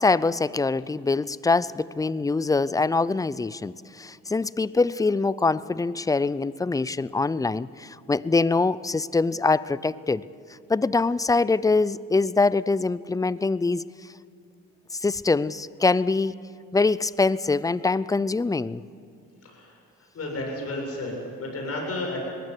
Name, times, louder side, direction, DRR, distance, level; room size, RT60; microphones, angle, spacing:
voice 1, 0.0-10.2 10.7-13.9 14.9-16.4 16.7-18.8, left 3 dB, 10° left, 19 dB, 0.4 m, -24 dB
voice 2, 19.4-19.8 20.1-22.2, left 2 dB, 55° left, 0 dB, 7.6 m, -32 dB
20.5 x 16.0 x 9.8 m, 2.3 s
cardioid pair, 90°, 30 cm